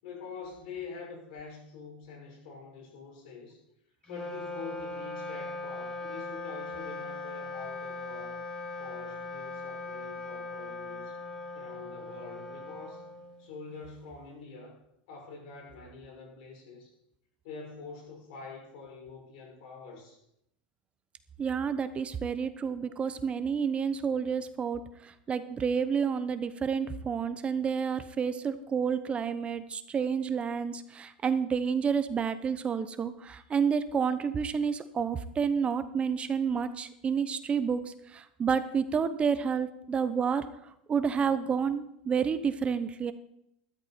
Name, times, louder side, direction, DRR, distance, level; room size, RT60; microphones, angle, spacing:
voice 1, 0.0-3.6 4.1-8.4 8.7-11.2 11.5-13.1 13.4-14.8 15.1-16.9 17.4-20.2, left 5 dB, 70° left, 1 dB, 5.9 m, -45 dB
Wind instrument woodwind instrument, 4.0-13.6, left 2 dB, 20° left, 5.6 m, -39 dB
voice 2, 21.4-40.4 40.9-43.1, right 6 dB, 25° right, 12 dB, 0.8 m, -30 dB
13.5 x 12.5 x 4.3 m, 0.77 s
supercardioid pair, 115°, 5 cm